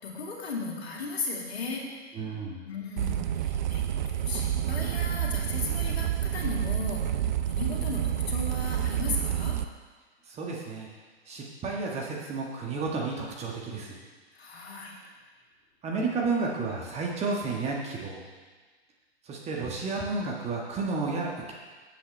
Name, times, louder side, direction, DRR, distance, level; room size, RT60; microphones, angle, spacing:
voice 1, 0.0-1.8 2.6-9.6 14.3-14.9, left 3 dB, 65° left, -2 dB, 2.6 m, -36 dB
voice 2, 2.1-2.7 10.3-10.9 11.3-14.0 15.8-18.2 19.2-21.5, right 3 dB, 20° right, -2 dB, 1.7 m, -32 dB
sound 1, 3.0-9.6, right 11 dB, 40° right, 0.5 m, -29 dB
16.0 x 8.5 x 3.3 m, 1.3 s
figure-of-eight pair, 110°, 34 cm